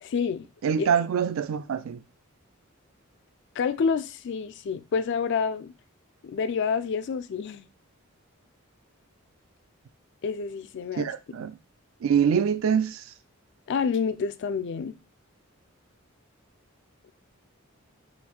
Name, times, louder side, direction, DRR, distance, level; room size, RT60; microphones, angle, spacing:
voice 1, 0.0-0.5 0.8-0.9 3.6-5.7 6.2-7.7 10.2-11.1 13.7-14.9, left 5 dB, 55° left, 0.3 m, -28 dB
voice 2, 0.6-2.0 11.0-11.6 12.0-13.1, right 7 dB, 65° right, 0.3 m, -25 dB
3.9 x 2.5 x 4.2 m
head